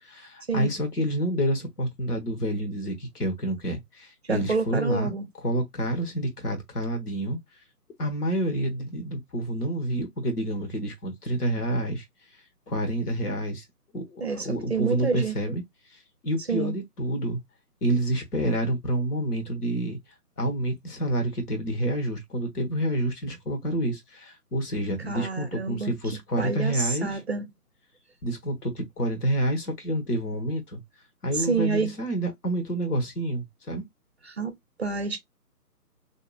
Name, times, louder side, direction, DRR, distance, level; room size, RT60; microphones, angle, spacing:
voice 1, 0.0-5.2 5.4-7.4 8.0-12.0 12.7-13.6 13.9-15.6 16.2-17.4 17.8-20.0 20.4-27.2 28.2-30.8 31.2-33.8, right 1 dB, 70° left, 1.3 m, -28 dB
voice 2, 4.3-5.2 14.2-15.3 16.5-16.7 25.1-25.9 26.4-27.5 31.3-31.9 34.2-34.5 34.8-35.2, right 5 dB, 45° right, 0.5 m, -28 dB
2.8 x 2.4 x 2.3 m
figure-of-eight pair, 155°, 48 cm